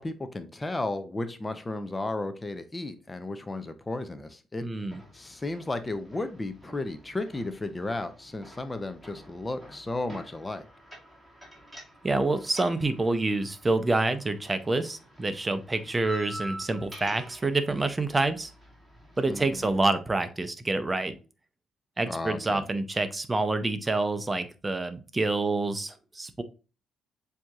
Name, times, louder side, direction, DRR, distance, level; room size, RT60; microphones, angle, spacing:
voice 1, 0.0-4.7 5.1-10.7 19.3-19.7 22.1-22.7, left 2 dB, 20° left, 0.6 m, -34 dB
voice 2, 4.6-5.0 12.0-18.5 19.2-21.2 22.0-26.4, right 2 dB, 20° right, 0.6 m, -27 dB
sound 1, 4.9-19.9, right 1 dB, 5° right, 2.2 m, -48 dB
7.4 x 2.8 x 2.4 m
cardioid pair, 90°, 0 cm